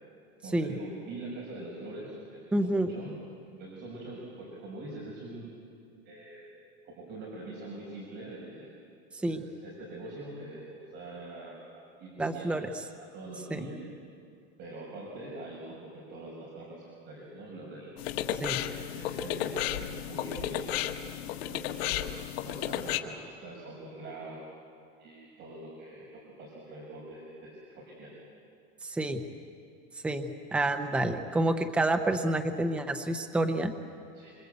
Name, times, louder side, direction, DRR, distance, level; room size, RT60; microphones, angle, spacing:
voice 1, 0.4-5.5 6.0-6.5 6.8-8.7 9.2-11.6 12.0-12.7 13.1-13.8 14.6-17.9 18.5-20.7 21.1-24.4 25.0-28.2 34.1-34.3, right 2 dB, 35° right, -3 dB, 5.8 m, -44 dB
voice 2, 2.5-2.9 9.2-9.4 12.2-12.7 13.5-13.6 18.4-18.6 28.8-29.2 30.0-33.7, right 1 dB, 5° right, 6 dB, 0.8 m, -28 dB
sound 1, 18.0-23.0, left 11 dB, 75° left, 1.6 m, -33 dB
26.5 x 26.0 x 8.1 m, 2.4 s
supercardioid pair, 165°, 31 cm